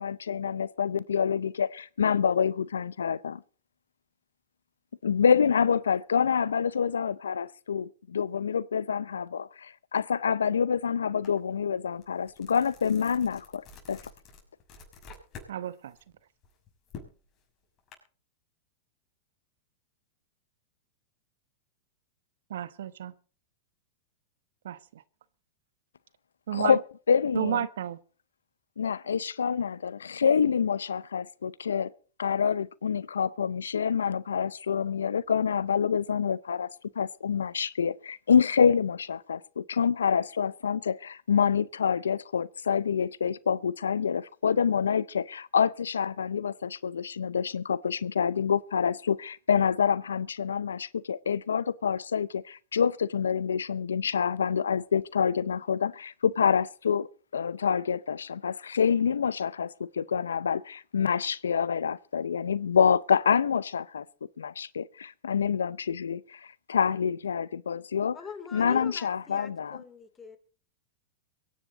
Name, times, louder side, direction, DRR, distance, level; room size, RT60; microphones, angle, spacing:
voice 1, 0.0-3.4 5.0-14.0 26.5-26.8 27.1-27.6 28.8-31.9 32.2-36.7 37.0-64.0 64.4-68.2 68.5-69.8, left 7 dB, 90° left, 0.6 m, -27 dB
sound 1, 11.2-11.4 11.8-15.5 15.9-17.9, left 5 dB, 35° left, 6.2 m, -48 dB
voice 2, 15.5-16.0 22.5-23.1 24.6-25.0 26.5-26.8 27.3-28.0, right 10 dB, 75° right, 1.0 m, -32 dB
voice 3, 68.1-70.4, left 5 dB, 20° left, 2.7 m, -43 dB
23.5 x 10.0 x 3.9 m
hypercardioid pair, 110°, 0 cm